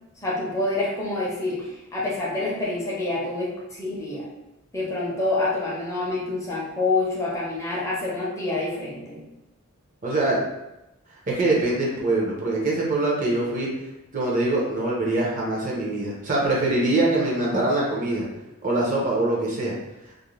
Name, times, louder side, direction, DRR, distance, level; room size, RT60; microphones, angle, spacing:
voice 1, 0.2-4.2 4.7-9.2, left 2 dB, 15° left, -5 dB, 0.5 m, -27 dB
voice 2, 10.0-10.4 11.3-13.7 14.1-18.3 18.6-19.7, right 2 dB, 40° right, -3 dB, 0.6 m, -23 dB
2.4 x 2.0 x 3.0 m, 0.95 s
head